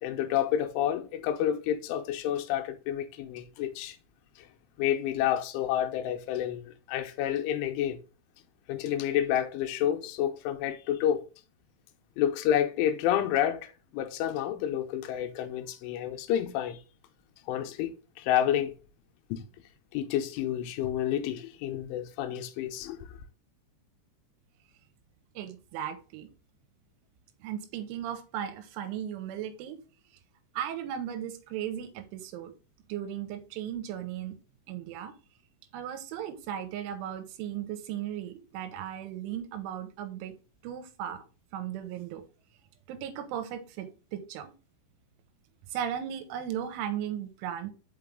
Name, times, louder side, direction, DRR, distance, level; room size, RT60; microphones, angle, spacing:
voice 1, 0.0-4.0 4.8-8.0 8.7-11.2 12.2-16.8 17.5-18.7 19.3-19.5 19.9-23.1, left 10 dB, 90° left, 3.1 m, -29 dB
voice 2, 25.4-26.3 27.4-29.8 30.5-32.5 32.9-34.4 34.7-35.1 35.7-40.3 40.6-41.2 41.5-42.2 42.9-44.5 45.7-47.7, right 10 dB, 90° right, 3.2 m, -36 dB
6.0 x 5.4 x 3.6 m
omnidirectional pair, 5.6 m